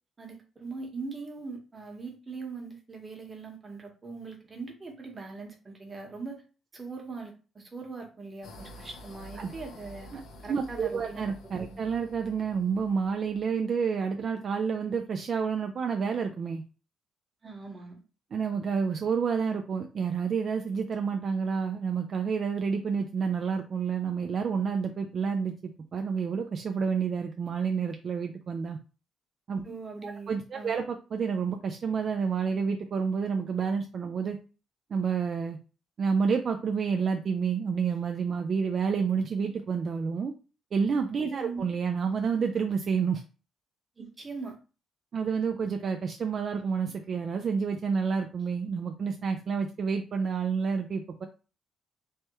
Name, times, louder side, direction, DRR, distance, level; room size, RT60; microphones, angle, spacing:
voice 1, 0.2-6.4 6.7-10.1 10.4-11.2 11.7-11.8 17.4-18.0 29.6-30.8 41.4-41.6 44.0-44.6, right 4 dB, 30° right, 1 dB, 1.1 m, -41 dB
sound 1, 8.4-13.4, equal, 75° left, 0.5 m, -49 dB
voice 2, 10.5-16.6 18.3-25.5 25.9-28.8 29.5-29.6 30.0-34.4 34.9-35.6 36.0-40.3 40.7-43.2 45.1-51.3, right 6 dB, 50° right, 4 dB, 0.3 m, -29 dB
3.3 x 2.2 x 2.9 m, 0.34 s
cardioid pair, 90°, 0 cm